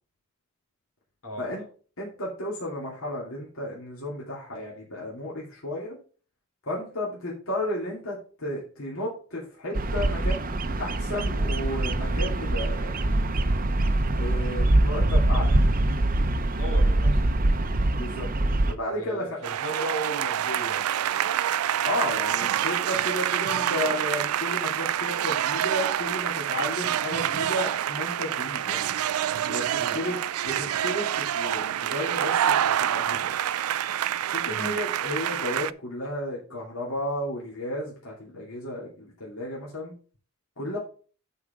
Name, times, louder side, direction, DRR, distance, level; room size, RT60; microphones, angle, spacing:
voice 1, 2.0-6.0 6.7-10.4 10.8-13.0 14.2-15.6 18.0-18.3 18.6-19.4 21.8-28.9 29.5-33.3 34.3-39.9 40.6-40.8, left 1 dB, 70° left, -4 dB, 2.6 m, -33 dB
Bird vocalization bird call bird song, 9.7-18.7, right 1 dB, 40° right, 0.7 m, -24 dB
voice 2, 16.6-17.3 18.9-21.3 29.8-30.0 34.5-34.8, right 1 dB, 90° left, 0 dB, 3.3 m, -36 dB
sound 1, 19.4-35.7, right 10 dB, 85° right, 0.4 m, -27 dB
8.4 x 5.0 x 5.0 m, 0.40 s
head